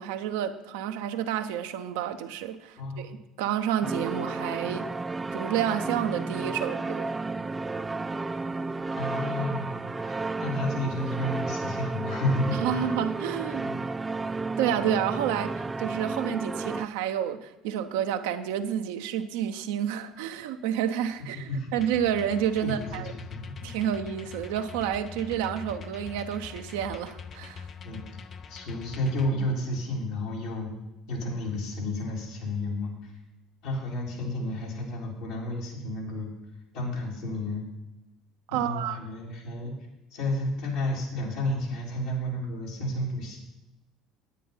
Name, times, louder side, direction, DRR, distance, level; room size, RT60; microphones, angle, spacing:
voice 1, 0.0-4.9 5.3-7.1 12.5-13.7 14.6-23.1 23.6-27.7 38.5-39.0, right 9 dB, 75° right, 0.8 m, -30 dB
voice 2, 2.8-3.1 8.9-13.0 13.6-13.8 21.5-21.7 22.6-23.7 27.8-28.0 28.5-30.7 31.1-33.1 33.6-36.3 36.7-37.7 38.5-39.7 40.1-43.4, left 1 dB, 75° left, 3.8 m, -31 dB
sound 1, 3.8-16.9, right 3 dB, 20° right, 0.5 m, -32 dB
sound 2, 21.8-29.3, left 6 dB, 45° left, 0.8 m, -43 dB
9.7 x 9.3 x 5.5 m
hypercardioid pair, 70°, 0 cm